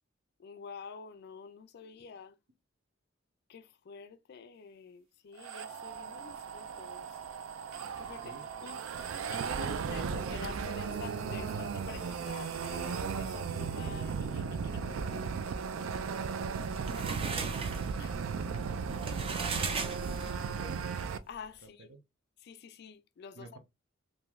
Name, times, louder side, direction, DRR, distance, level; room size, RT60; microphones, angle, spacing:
voice 1, 0.4-2.4 3.5-7.1 8.0-8.2 8.6-8.8 9.2-15.1 18.0-18.2 18.5-18.6 21.3-21.9 22.4-23.5, left 5 dB, 55° left, 0.3 m, -48 dB
sound 1, 5.4-21.2, right 6 dB, 90° right, 0.4 m, -36 dB
voice 2, 8.2-8.7 15.8-19.6 20.0-20.9 21.6-22.0 23.3-23.6, right 3 dB, 75° right, 0.7 m, -53 dB
sound 2, 10.1-15.3, equal, ahead, 1.1 m, -50 dB
sound 3, 16.4-20.6, right 4 dB, 30° right, 0.4 m, -38 dB
3.1 x 2.6 x 2.3 m
head